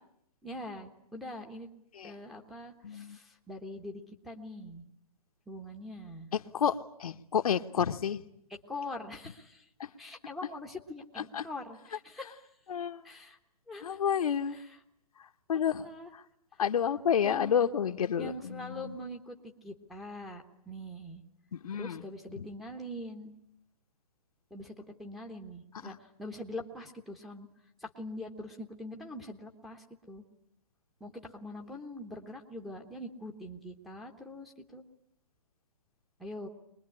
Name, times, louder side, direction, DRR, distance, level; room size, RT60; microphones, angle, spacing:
voice 1, 0.4-1.7 2.0-4.8 5.5-6.3 8.7-9.6 10.0-12.4 13.0-13.4 13.7-14.0 14.5-14.7 15.8-16.1 17.2-17.6 18.2-21.2 21.7-23.3 24.5-24.7 25.0-27.5 27.8-30.2 31.0-34.8 36.2-36.5, left 1 dB, ahead, 1.3 m, -43 dB
voice 2, 2.8-3.2 6.3-8.2 9.8-9.9 11.3-11.5 12.7-13.0 13.8-14.6 15.5-16.2 16.6-18.9 21.5-22.0 22.3-22.5 25.8-26.0, left 8 dB, 70° left, 1.2 m, -30 dB
23.5 x 21.0 x 9.8 m
hypercardioid pair, 160°, 19 cm